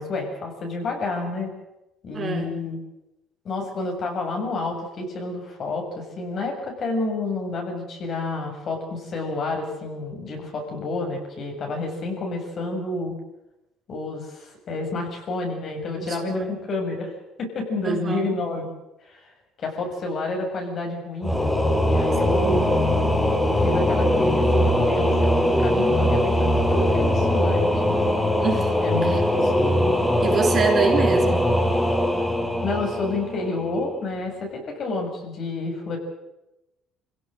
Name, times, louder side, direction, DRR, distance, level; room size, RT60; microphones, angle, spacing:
voice 1, 0.0-1.5 2.0-2.8 3.4-13.2 13.9-17.1 17.4-18.7 19.0-19.3 19.6-21.5 21.8-22.7 23.5-28.0 28.8-29.9 32.6-36.0, left 2 dB, 50° left, 2 dB, 7.4 m, -29 dB
voice 2, 2.1-2.6 15.9-16.5 17.8-18.4 22.3-22.6 28.4-29.2 30.2-31.5, right 5 dB, 35° right, 2 dB, 4.5 m, -26 dB
Singing / Musical instrument, 21.2-33.8, left 1 dB, 5° left, 2.8 m, -21 dB
25.5 x 17.0 x 7.9 m, 0.94 s
cardioid pair, 105°, 0 cm